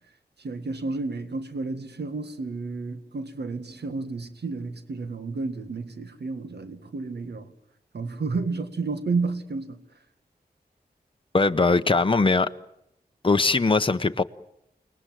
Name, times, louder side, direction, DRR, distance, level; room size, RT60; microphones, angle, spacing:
voice 1, 0.4-7.5 7.9-9.8, right 3 dB, 85° right, 1.9 m, -31 dB
voice 2, 11.3-12.5 13.2-14.2, left 3 dB, 30° left, 1.0 m, -20 dB
29.5 x 20.0 x 7.7 m
wide cardioid pair, 70°, 17 cm